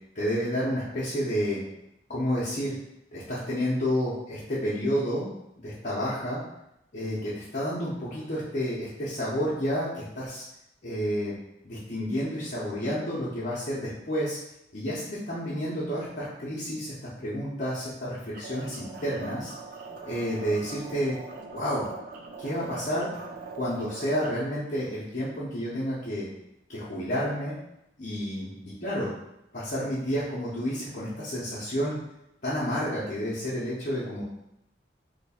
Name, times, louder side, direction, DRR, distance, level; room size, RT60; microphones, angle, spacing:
voice 1, 0.1-1.6 2.1-2.7 3.1-5.3 5.6-6.4 6.9-10.4 10.8-11.3 11.6-14.4 14.7-19.5 20.1-21.1 21.5-21.9 22.4-23.1 23.5-26.3 26.7-27.6 28.0-29.1 29.5-32.0 32.4-34.2, equal, 45° left, -9 dB, 0.8 m, -30 dB
sound 1, 18.3-24.3, right 4 dB, 50° right, 0.4 m, -42 dB
2.9 x 2.3 x 4.2 m, 0.85 s
head